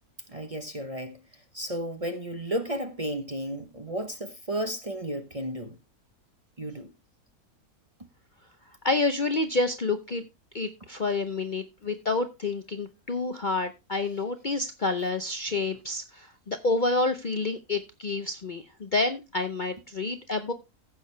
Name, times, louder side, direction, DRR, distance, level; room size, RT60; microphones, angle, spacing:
voice 1, 0.3-5.8 6.6-6.9, right 1 dB, 30° right, 0.8 m, -33 dB
voice 2, 8.8-10.2 10.5-20.5, left 3 dB, 40° left, 0.7 m, -28 dB
15.0 x 6.5 x 3.3 m
omnidirectional pair, 1.6 m